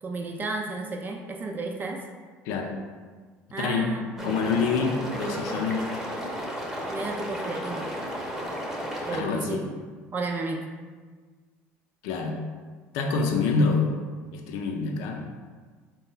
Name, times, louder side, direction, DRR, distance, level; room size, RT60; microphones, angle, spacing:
voice 1, 0.0-2.0 3.5-4.3 5.7-5.9 6.9-7.9 9.0-9.8 10.1-10.7, right 3 dB, 30° right, 2 dB, 0.4 m, -33 dB
voice 2, 3.6-3.9 4.2-5.8 9.1-9.6 12.0-12.4 12.9-13.9 14.3-15.2, left 4 dB, 80° left, 3 dB, 0.5 m, -26 dB
sound 1, 4.2-9.2, equal, 5° right, 0.8 m, -33 dB
4.1 x 2.3 x 3.9 m, 1.5 s
supercardioid pair, 95°, 6 cm